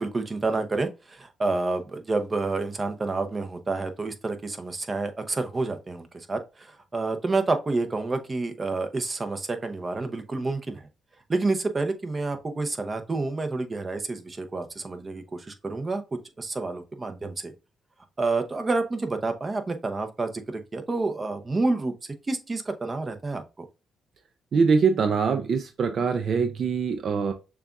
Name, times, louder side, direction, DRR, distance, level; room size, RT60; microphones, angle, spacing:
voice 1, 0.0-10.9 11.3-16.0 16.4-17.5 18.2-21.9 22.3-23.7, right 3 dB, 25° right, 0.7 m, -29 dB
voice 2, 24.5-27.3, right 5 dB, 55° right, 0.4 m, -23 dB
6.6 x 2.3 x 2.4 m
cardioid pair, 90°, 0 cm